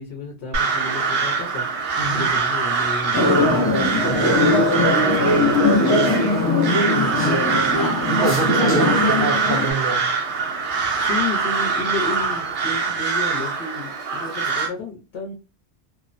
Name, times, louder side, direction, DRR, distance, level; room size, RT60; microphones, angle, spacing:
voice 1, 0.0-1.6 2.1-7.4 8.6-9.3 11.0-15.3, left 3 dB, 70° left, 0.9 m, -32 dB
Crow, 0.5-14.7, right 5 dB, 85° right, 1.1 m, -23 dB
sound 1, 3.1-9.7, left 2 dB, 20° left, 0.4 m, -20 dB
voice 2, 8.1-10.0, right 4 dB, 60° right, 0.7 m, -25 dB
3.0 x 2.0 x 2.4 m
omnidirectional pair, 1.1 m